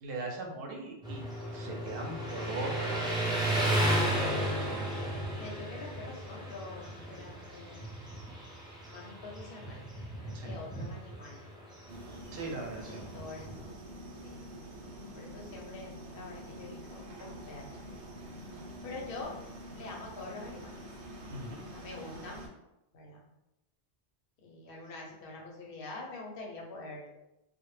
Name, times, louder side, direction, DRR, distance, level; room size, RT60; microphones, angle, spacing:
voice 1, 0.0-1.3 1.5-3.0 4.6-4.9 5.3-5.4 10.3-10.5 12.3-13.1 21.3-21.6, right 2 dB, 65° right, 0 dB, 0.7 m, -39 dB
Motorcycle, 1.0-13.7, right 1 dB, 5° right, 0.4 m, -34 dB
voice 2, 5.4-7.8 8.8-11.6 12.4-12.7 13.1-13.7 14.2-14.5 15.1-17.8 18.8-19.3 19.7-20.7 21.6-22.4 22.9-23.3 24.4-27.1, left 3 dB, 60° left, -1 dB, 0.8 m, -46 dB
sound 1, 11.9-22.5, right 1 dB, 90° right, 0.9 m, -46 dB
2.1 x 2.1 x 3.1 m, 0.90 s
omnidirectional pair, 1.1 m